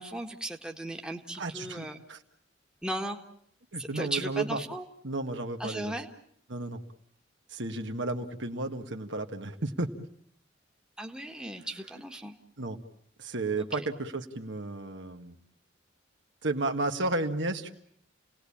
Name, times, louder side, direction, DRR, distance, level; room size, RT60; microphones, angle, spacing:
voice 1, 0.0-2.0 2.8-3.2 3.8-4.8 5.6-6.1 11.0-12.4 13.6-13.9, right 1 dB, 5° right, 2 dB, 1.7 m, -36 dB
voice 2, 1.4-2.2 3.7-4.6 5.0-5.9 6.5-6.8 7.5-9.9 12.6-12.8 13.2-15.4 16.4-17.7, right 2 dB, 65° right, 5 dB, 1.8 m, -33 dB
30.0 x 19.0 x 8.7 m, 0.68 s
head